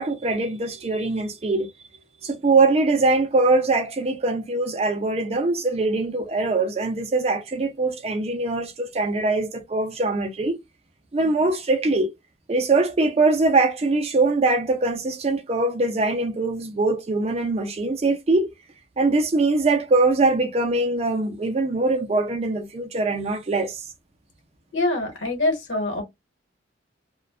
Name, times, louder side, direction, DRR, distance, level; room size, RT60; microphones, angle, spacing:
voice 1, 0.0-1.7 2.2-10.6 11.1-12.1 12.5-18.5 19.0-23.8, right 3 dB, 30° right, 0.4 m, -22 dB
voice 2, 24.7-26.0, left 2 dB, 75° left, 1.0 m, -24 dB
2.4 x 2.2 x 2.3 m
head